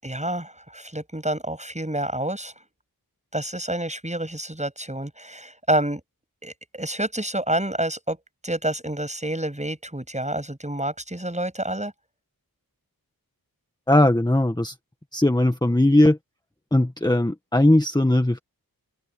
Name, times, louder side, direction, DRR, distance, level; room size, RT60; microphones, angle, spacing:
voice 1, 0.0-2.5 3.3-6.0 6.4-8.2 8.4-11.9, right 1 dB, 20° right, 7.8 m, -28 dB
voice 2, 13.9-14.7 15.1-16.2 16.7-18.4, left 1 dB, 10° left, 1.6 m, -19 dB
wide cardioid pair, 55°, 38 cm